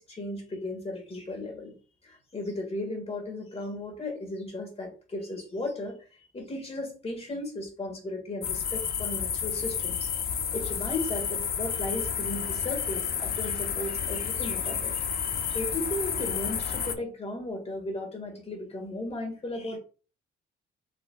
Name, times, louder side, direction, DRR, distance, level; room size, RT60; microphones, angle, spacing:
voice 1, 0.0-1.7 2.0-15.1 15.4-19.8, left 2 dB, 30° left, 3 dB, 1.8 m, -36 dB
sound 1, 8.4-17.0, left 7 dB, 50° left, 0.6 m, -31 dB
5.7 x 3.1 x 2.3 m, 0.37 s
cardioid pair, 90°, 20 cm